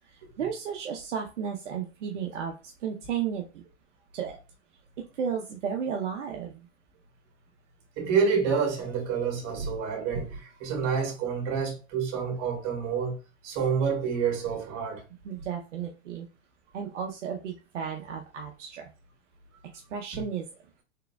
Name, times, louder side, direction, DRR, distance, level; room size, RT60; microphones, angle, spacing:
voice 1, 0.4-2.5 2.8-3.6 4.1-4.4 5.2-6.6 15.2-16.2 16.7-18.9 19.9-20.5, right 7 dB, 85° right, 0.7 m, -33 dB
voice 2, 8.0-13.2 13.4-15.0 20.1-20.2, right 6 dB, 45° right, 1.8 m, -28 dB
3.8 x 3.6 x 2.2 m
hypercardioid pair, 105°, 35 cm